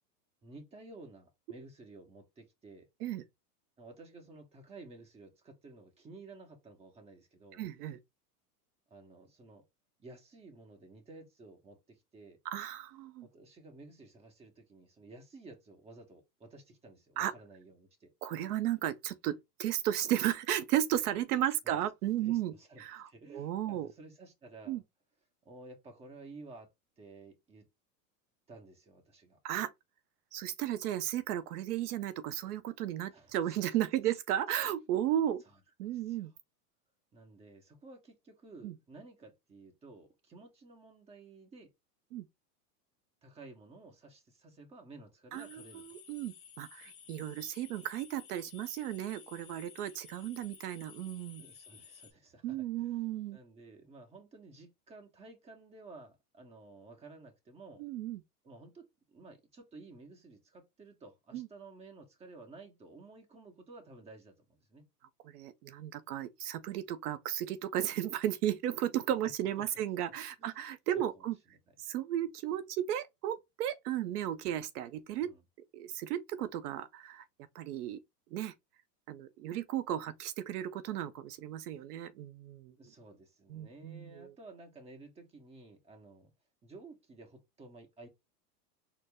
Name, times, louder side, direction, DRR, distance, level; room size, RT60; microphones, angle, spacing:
voice 1, 0.4-2.9 3.8-7.6 8.9-9.7 10.0-12.4 13.2-18.1 21.6-21.8 22.2-24.8 25.4-26.7 27.0-27.7 28.5-29.4 33.1-33.6 35.5-35.6 35.9-36.3 37.1-41.7 43.2-46.0 51.4-53.1 53.3-57.8 58.4-64.9 69.2-69.3 69.6-69.7 70.1-70.5 70.9-71.3 75.2-75.4 82.8-86.3 86.6-88.1, right 3 dB, 15° right, 0.8 m, -53 dB
voice 2, 7.6-8.0 12.5-13.3 17.2-17.3 18.2-22.5 22.8-23.9 24.7-24.8 29.4-29.7 30.3-35.4 35.8-36.3 38.6-38.7 42.1-42.3 45.3-51.4 52.4-53.4 57.8-58.2 61.3-61.5 65.2-71.4 71.8-75.3 75.7-77.2 77.5-78.0 78.3-78.5 79.1-82.7 83.5-84.3, right 12 dB, 70° right, 0.6 m, -34 dB
sound 1, 45.3-52.1, left 8 dB, 25° left, 1.2 m, -55 dB
4.3 x 2.0 x 3.3 m
hypercardioid pair, 130°, 48 cm